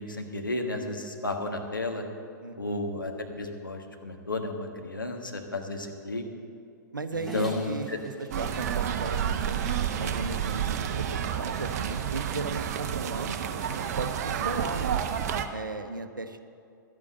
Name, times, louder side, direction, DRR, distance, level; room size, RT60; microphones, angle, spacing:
voice 1, 0.0-2.0 2.6-6.2 7.1-8.0, left 2 dB, 85° left, 3 dB, 1.4 m, -33 dB
voice 2, 2.4-2.8 6.9-9.6 9.9-13.6 14.0-15.0 15.5-16.4, right 3 dB, 80° right, 10 dB, 0.8 m, -36 dB
Dog, 7.1-12.5, equal, ahead, 2.4 m, -46 dB
sound 1, 8.3-15.5, right 8 dB, 50° right, 0.8 m, -30 dB
12.0 x 8.5 x 7.4 m, 2.4 s
figure-of-eight pair, 105°, 11 cm